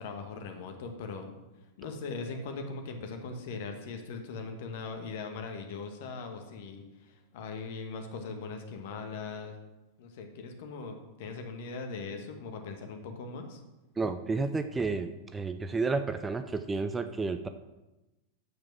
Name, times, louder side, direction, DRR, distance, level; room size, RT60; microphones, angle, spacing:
voice 1, 0.0-1.3 1.8-9.5 10.0-13.6, left 4 dB, 50° left, 5 dB, 1.4 m, -40 dB
voice 2, 14.0-17.5, right 3 dB, 15° right, 9 dB, 0.5 m, -31 dB
8.5 x 7.0 x 6.0 m, 1.0 s
figure-of-eight pair, 90°, 0 cm